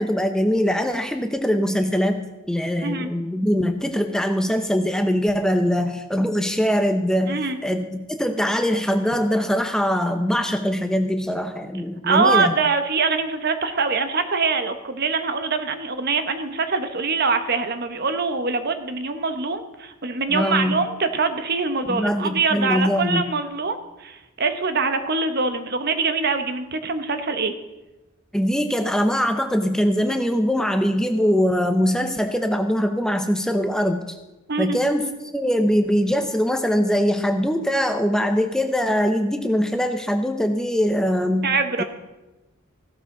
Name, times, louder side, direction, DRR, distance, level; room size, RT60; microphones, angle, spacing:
voice 1, 0.0-12.5 20.3-20.9 21.9-23.3 28.3-34.2 34.6-41.8, equal, 5° left, 6 dB, 0.6 m, -22 dB
voice 2, 7.3-7.6 12.0-27.5 34.5-34.8 41.4-41.8, right 4 dB, 50° right, 8 dB, 1.0 m, -24 dB
16.0 x 12.5 x 3.8 m, 1.0 s
head